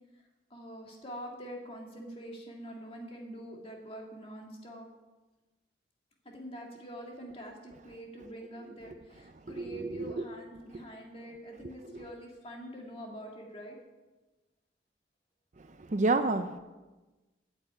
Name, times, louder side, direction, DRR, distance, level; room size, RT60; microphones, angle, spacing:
voice 1, 0.5-4.9 6.3-13.8, equal, 30° left, 0 dB, 2.0 m, -45 dB
voice 2, 9.5-10.3 15.6-16.6, right 2 dB, 40° right, 9 dB, 0.5 m, -30 dB
8.9 x 8.0 x 8.8 m, 1.2 s
head